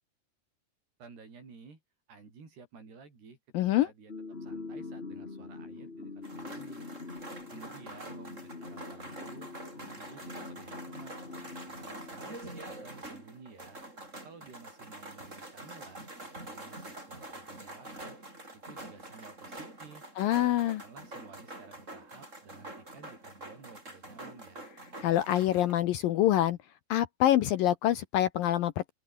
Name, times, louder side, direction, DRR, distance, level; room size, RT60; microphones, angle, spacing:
voice 1, 1.0-1.8 2.1-6.9 7.5-9.5 9.8-12.4 12.6-13.8 14.2-18.2 18.5-20.1 20.5-24.7, right 4 dB, 70° right, 8.9 m, -54 dB
voice 2, 3.5-3.9 20.2-20.8 25.0-26.6 26.9-28.9, left 13 dB, 70° left, 2.3 m, -26 dB
sound 1, 4.1-12.9, left 3 dB, 25° left, 1.4 m, -44 dB
sound 2, 6.2-25.7, right 2 dB, 15° right, 7.0 m, -46 dB
open air
omnidirectional pair, 4.9 m